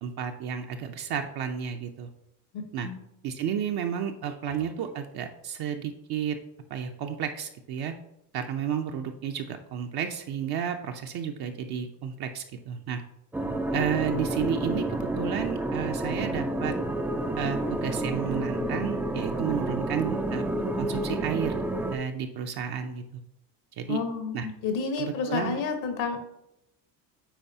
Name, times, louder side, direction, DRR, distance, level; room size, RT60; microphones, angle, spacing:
voice 1, 0.0-2.1 2.7-2.9 3.2-6.4 6.7-7.9 8.3-13.0 13.7-16.7 17.4-20.4 20.8-21.6 21.9-23.0 23.8-24.0 24.3-24.5 25.0-25.6, right 8 dB, 50° right, 4 dB, 0.7 m, -32 dB
voice 2, 2.5-3.0 23.9-26.2, left 5 dB, 65° left, 6 dB, 1.3 m, -30 dB
sound 1, 13.3-22.0, right 1 dB, 5° right, 0.4 m, -30 dB
9.0 x 3.9 x 2.8 m, 0.83 s
supercardioid pair, 80°, 49 cm